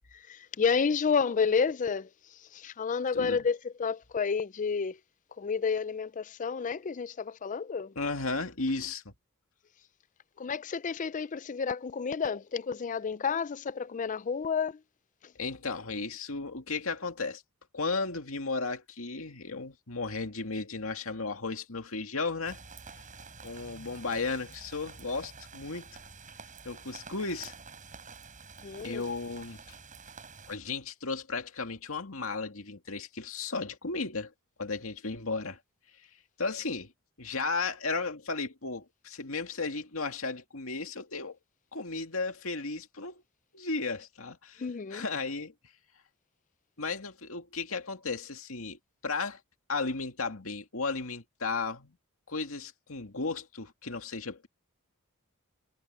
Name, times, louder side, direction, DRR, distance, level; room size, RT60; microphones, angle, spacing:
voice 1, 0.1-5.0 5.4-7.9 10.4-14.8 15.2-15.3 28.6-29.1 44.6-45.0, left 5 dB, 35° left, 0.4 m, -30 dB
voice 2, 8.0-9.1 15.4-17.4 17.7-22.6 23.4-26.0 26.6-27.5 28.8-29.6 30.5-34.3 34.6-35.6 36.4-36.9 37.2-41.4 41.7-43.2 43.5-44.6 44.9-45.5 46.8-49.4 49.7-52.0 52.3-54.5, left 3 dB, 70° left, 2.4 m, -34 dB
sound 1, 22.4-30.6, right 5 dB, 35° right, 7.2 m, -49 dB
head